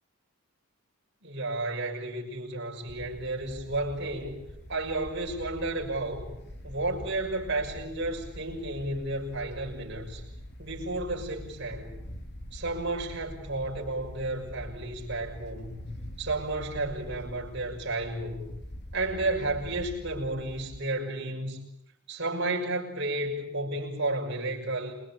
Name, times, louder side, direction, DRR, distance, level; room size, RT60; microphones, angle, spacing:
voice 1, 1.2-4.3 4.7-6.3 6.6-10.2 10.6-12.0 12.5-15.9 16.2-18.4 18.9-21.6 22.1-24.9, right 2 dB, 55° right, 0 dB, 6.4 m, -32 dB
sound 1, 2.9-20.8, equal, 50° left, 2.8 m, -44 dB
27.5 x 23.0 x 8.7 m, 0.77 s
head